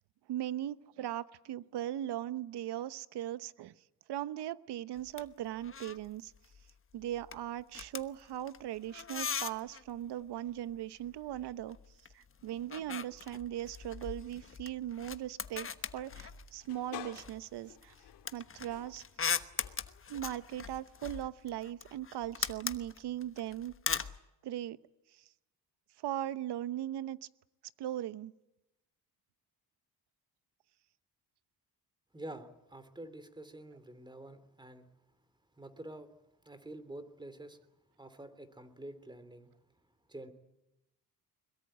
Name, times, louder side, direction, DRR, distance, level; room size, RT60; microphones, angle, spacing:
voice 1, 0.3-3.8 4.1-6.3 6.9-11.8 12.1-15.7 15.9-17.9 18.3-19.0 20.1-23.7 24.4-24.8 25.1-25.3 26.0-27.3 27.8-28.3, right 12 dB, 80° right, 15 dB, 1.0 m, -39 dB
sound 1, 5.0-5.3 5.5-6.1 6.4-6.7 7.0-9.9 11.1-12.1 12.4-16.7 17.1-24.2, left 6 dB, 30° left, 1.2 m, -40 dB
sound 2, 15.5-20.7, left 10 dB, 90° left, 2.9 m, -52 dB
voice 2, 32.1-34.9 35.6-36.1 36.4-37.6 38.0-39.5 40.1-40.3, right 1 dB, 10° right, 12 dB, 3.1 m, -48 dB
22.5 x 22.0 x 8.8 m, 0.93 s
cardioid pair, 110°, 40 cm